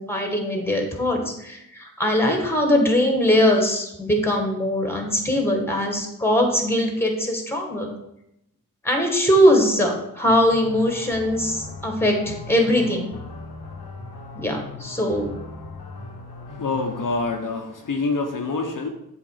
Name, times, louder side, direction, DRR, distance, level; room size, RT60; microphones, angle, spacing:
voice 1, 0.0-7.9 8.8-13.1 14.4-15.3, equal, 5° left, 2 dB, 1.9 m, -21 dB
sound 1, 10.2-17.3, left 3 dB, 85° left, 1.1 m, -38 dB
voice 2, 16.5-18.9, left 3 dB, 60° left, 2 dB, 1.0 m, -26 dB
7.8 x 3.5 x 4.9 m, 0.82 s
cardioid pair, 45°, 36 cm